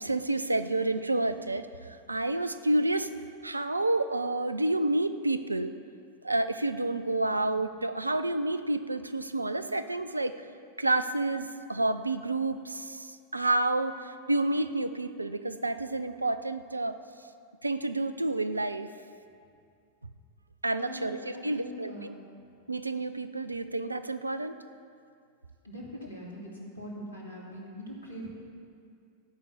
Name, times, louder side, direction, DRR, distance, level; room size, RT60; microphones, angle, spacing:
voice 1, 0.0-3.1 3.4-5.7 6.2-10.4 10.8-17.0 17.6-18.9 20.6-22.1 22.7-24.6, right 2 dB, 85° right, 11 dB, 0.5 m, -29 dB
voice 2, 20.8-22.2 25.6-28.3, equal, 75° left, -3 dB, 2.8 m, -42 dB
14.0 x 5.9 x 8.0 m, 2.3 s
figure-of-eight pair, 90°, 0 cm